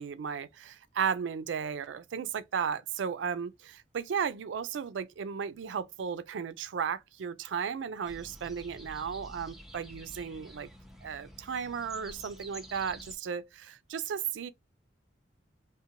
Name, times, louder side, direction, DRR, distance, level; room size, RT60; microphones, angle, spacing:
voice 1, 0.0-10.7 11.0-14.5, right 7 dB, 85° right, 0.4 m, -35 dB
sound 1, 8.0-13.2, right 1 dB, ahead, 0.4 m, -49 dB
2.5 x 2.1 x 2.7 m
head